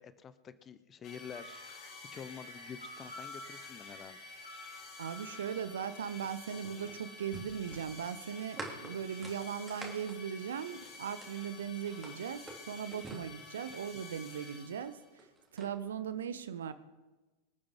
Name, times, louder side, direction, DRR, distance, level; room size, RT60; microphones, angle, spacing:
voice 1, 0.0-4.2, left 7 dB, 25° left, 14 dB, 0.8 m, -48 dB
sound 1, 1.0-15.1, left 4 dB, 40° left, 2.4 m, -50 dB
sound 2, 1.3-6.7, equal, 80° left, 2.9 m, -52 dB
voice 2, 5.0-15.3 15.5-16.7, right 8 dB, 65° right, 13 dB, 0.7 m, -39 dB
sound 3, 6.2-11.4 11.9-14.0 14.9-15.7, right 2 dB, 15° right, 2.8 m, -48 dB
25.0 x 8.7 x 3.8 m, 1.2 s
figure-of-eight pair, 90°, 0 cm